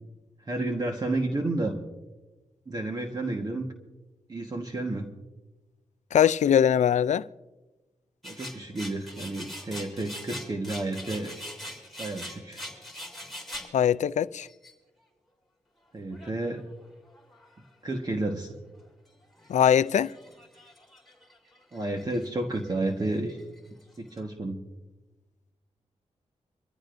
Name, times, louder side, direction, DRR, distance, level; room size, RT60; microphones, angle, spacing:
voice 1, 0.4-1.8 2.7-3.7 4.3-5.1 8.2-11.3 12.0-12.6 15.9-16.6 17.8-18.5 21.7-23.4 24.0-24.6, right 2 dB, 35° right, 1.4 m, -31 dB
voice 2, 6.1-7.2 13.7-14.5 19.5-20.1, left 9 dB, 75° left, 0.4 m, -21 dB
sound 1, 8.2-13.7 14.4-14.7 16.1-16.8 17.1-17.6 18.1-18.2 18.5-18.6 19.2-22.3 22.5-24.2, equal, ahead, 3.3 m, -43 dB
25.0 x 15.0 x 2.6 m
wide cardioid pair, 105°, 12 cm